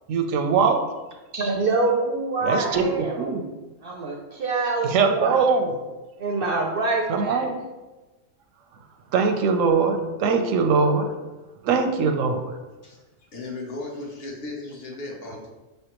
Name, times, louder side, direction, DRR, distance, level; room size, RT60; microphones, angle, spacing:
voice 1, 0.1-0.8 2.4-2.9 3.2-3.4 4.8-5.7 7.1-7.6 9.1-11.1 11.6-12.4, right 5 dB, 85° right, 6 dB, 1.0 m, -21 dB
voice 2, 1.3-3.3 3.8-5.4 6.2-7.5, right 3 dB, 60° right, 0 dB, 0.6 m, -25 dB
voice 3, 13.3-15.5, left 2 dB, 55° left, -1 dB, 1.0 m, -35 dB
5.4 x 3.3 x 2.9 m, 1.1 s
omnidirectional pair, 1.3 m